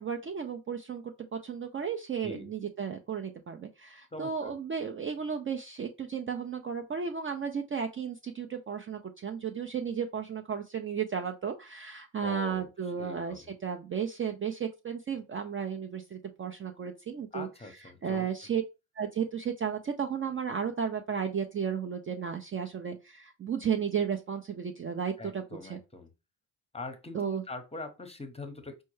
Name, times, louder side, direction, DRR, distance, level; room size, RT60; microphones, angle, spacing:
voice 1, 0.0-17.5 18.0-18.6 19.0-25.8 27.1-27.4, right 7 dB, 30° right, 4 dB, 0.4 m, -34 dB
voice 2, 4.1-4.5 12.2-12.7 13.0-13.5 17.3-18.3 25.2-26.1 26.7-28.8, left 2 dB, 15° left, 7 dB, 0.8 m, -43 dB
4.4 x 2.2 x 3.1 m, 0.28 s
supercardioid pair, 65°, 44 cm